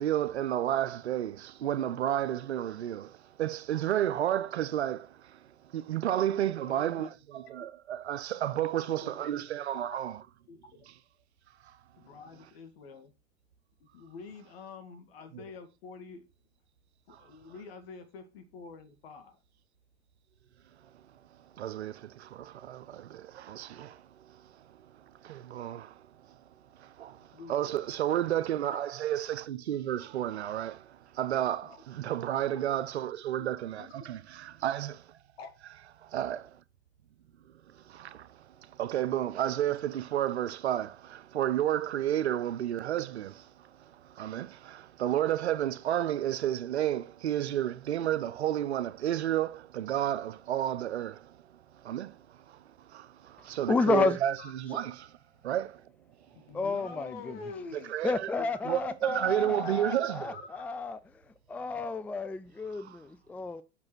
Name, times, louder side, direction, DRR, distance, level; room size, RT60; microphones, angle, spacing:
voice 1, 0.0-5.4 5.7-10.2 15.3-15.4 17.1-17.2 21.6-24.8 25.2-26.4 26.8-35.1 36.0-36.6 37.7-51.4 51.7-55.2 55.4-55.8 57.7-58.3 58.6-60.4 62.7-63.0, right 11 dB, 80° right, 0.7 m, -32 dB
voice 2, 6.6-7.1 8.6-9.4 10.5-10.8 12.0-13.1 13.8-16.3 17.1-19.4 27.3-27.8 28.1-28.2 28.6-28.8 31.6-31.8 32.4-32.6 33.8-33.9 35.4-35.5 54.4-54.5 56.3-58.0 58.4-58.7 59.1-60.0 60.3-60.4, left 4 dB, 65° left, 2.1 m, -47 dB
voice 3, 53.7-54.2 56.5-57.4 58.0-61.0 61.5-63.6, left 4 dB, 5° left, 0.4 m, -31 dB
5.4 x 5.3 x 6.1 m
hypercardioid pair, 90°, 32 cm